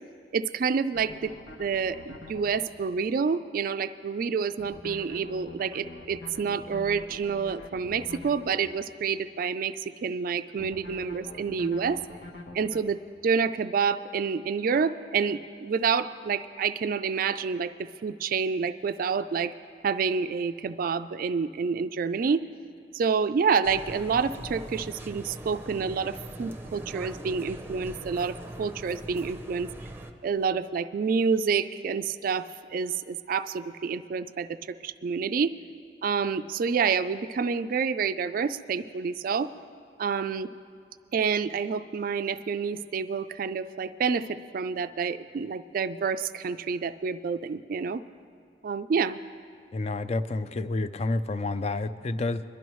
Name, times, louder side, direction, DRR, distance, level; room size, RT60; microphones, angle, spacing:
voice 1, 0.3-12.0 12.5-17.7 18.0-19.5 19.8-22.4 22.9-29.7 30.2-35.5 36.0-39.5 40.0-40.5 41.1-48.0 48.6-49.2, right 5 dB, 50° right, 11 dB, 0.3 m, -28 dB
sound 1, 0.9-2.6 4.6-8.6 10.6-12.8, left 2 dB, 85° left, 1.2 m, -44 dB
sound 2, 23.6-30.1, right 1 dB, 10° right, 0.6 m, -41 dB
voice 2, 49.7-52.4, left 2 dB, 35° left, 12 dB, 0.4 m, -29 dB
22.0 x 12.5 x 3.1 m, 2.3 s
head